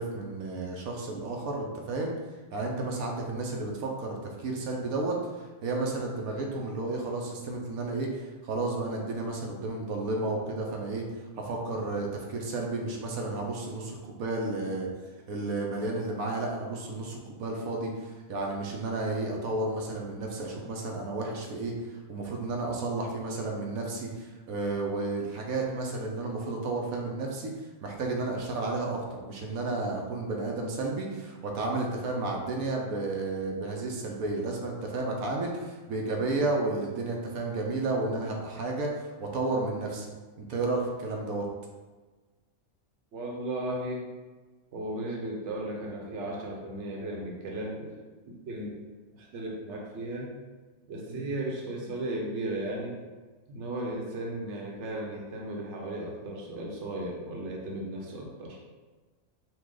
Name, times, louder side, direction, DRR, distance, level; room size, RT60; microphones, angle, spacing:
voice 1, 0.0-2.1 2.5-11.0 11.4-14.9 15.3-21.7 22.1-27.5 27.8-40.1 40.5-41.5 51.1-51.3, right 2 dB, 80° right, 0 dB, 1.2 m, -32 dB
voice 2, 43.1-44.1 44.7-48.0 48.3-48.8 49.1-50.3 50.9-53.0 53.5-58.6, right 1 dB, 60° right, -1 dB, 1.1 m, -35 dB
5.7 x 2.4 x 3.8 m, 1.3 s
omnidirectional pair, 1.5 m